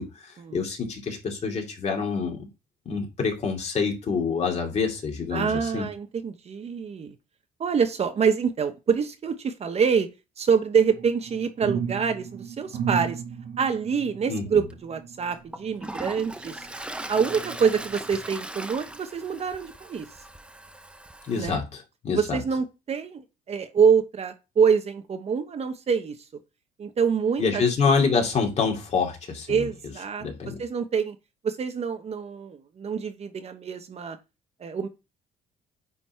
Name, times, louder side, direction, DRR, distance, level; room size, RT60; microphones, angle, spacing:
voice 1, 0.0-2.4 2.8-5.8 14.3-14.6 21.2-22.4 27.4-29.7 30.2-30.6, left 5 dB, 40° left, 2.6 m, -27 dB
voice 2, 5.3-7.1 7.6-10.1 10.4-13.2 13.6-16.7 17.1-20.1 21.4-21.6 22.1-26.2 26.8-27.9 29.5-30.2 30.6-31.2 31.4-34.2 34.6-34.9, right 6 dB, 40° right, 1.0 m, -26 dB
sound 1, 10.9-16.6 17.1-18.2 18.7-18.9, right 7 dB, 55° right, 1.4 m, -35 dB
Toilet flush, 14.7-14.8 15.3-21.5, right 1 dB, 5° right, 0.7 m, -39 dB
9.4 x 4.1 x 4.5 m
cardioid pair, 110°, 17 cm